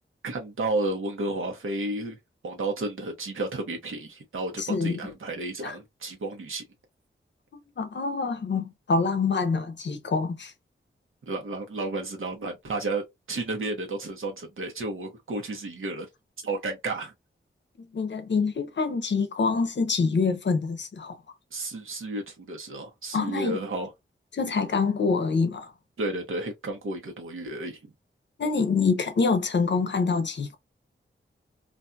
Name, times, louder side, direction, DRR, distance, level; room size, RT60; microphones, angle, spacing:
voice 1, 0.2-2.2 2.4-6.6 11.3-13.0 13.3-16.1 16.4-17.1 21.5-23.9 26.0-27.9, right 2 dB, 85° right, 1.0 m, -32 dB
voice 2, 4.6-5.0 5.6-5.7 7.5-10.5 17.9-21.2 23.1-23.6 24.3-25.7 28.4-30.6, left 4 dB, 60° left, 0.6 m, -26 dB
2.5 x 2.3 x 2.6 m
wide cardioid pair, 110°, 20 cm